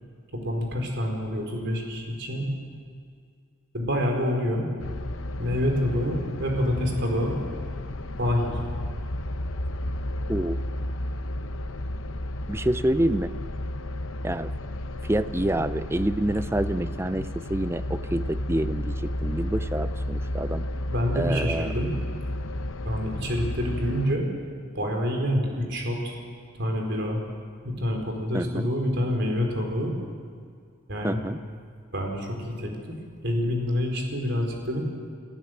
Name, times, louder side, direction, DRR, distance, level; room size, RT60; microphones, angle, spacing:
voice 1, 0.3-2.5 3.7-4.7 5.4-7.4 8.2-8.6 20.9-21.9 22.8-24.3 24.7-26.2 26.6-27.2 27.6-30.0 30.9-31.2 31.9-32.9 33.2-34.8, equal, 55° right, 2 dB, 4.6 m, -27 dB
sound 1, 4.8-24.2, left 1 dB, 65° left, 0.9 m, -32 dB
voice 2, 12.5-13.3 14.2-14.5 15.0-20.7 21.1-21.7 28.3-28.7 31.0-31.4, right 1 dB, 10° right, 13 dB, 0.5 m, -27 dB
29.0 x 15.0 x 8.0 m, 2.1 s
head